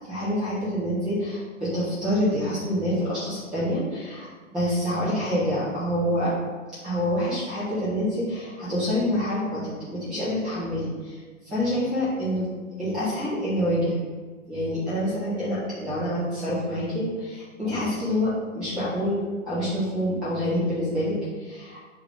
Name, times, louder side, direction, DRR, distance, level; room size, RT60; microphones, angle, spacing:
voice 1, 0.1-6.3 6.8-11.2 11.4-12.5 12.8-14.0 14.5-19.2 19.4-21.8, equal, ahead, -12 dB, 0.3 m, -27 dB
6.7 x 2.4 x 3.2 m, 1.4 s
hypercardioid pair, 130°, 38 cm